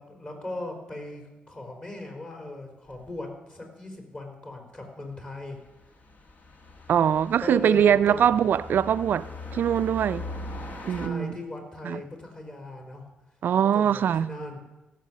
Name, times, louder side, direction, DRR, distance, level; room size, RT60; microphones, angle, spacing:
voice 1, 0.0-5.6 7.0-7.1 7.4-8.5 10.9-13.1 13.7-14.6, left 2 dB, 35° left, 4.3 m, -38 dB
sound 1, 2.9-3.1 5.6-11.1, left 3 dB, 50° left, 1.6 m, -40 dB
voice 2, 6.9-10.3 10.8-11.3 11.8-12.0 13.4-14.3, right 9 dB, 65° right, 0.4 m, -22 dB
17.0 x 7.4 x 7.5 m
cardioid pair, 70°, 4 cm